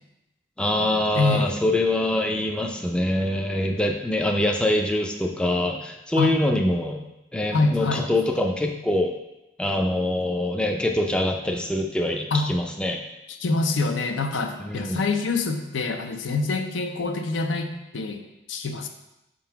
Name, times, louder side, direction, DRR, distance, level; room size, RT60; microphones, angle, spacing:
voice 1, 0.6-7.0 7.3-9.1 9.6-13.0 14.6-15.0, left 1 dB, 5° left, 2 dB, 0.4 m, -24 dB
voice 2, 1.1-1.5 6.2-6.3 7.5-8.1 12.3-12.5 13.4-18.9, left 3 dB, 85° left, 6 dB, 0.6 m, -25 dB
4.7 x 3.8 x 5.6 m, 0.92 s
head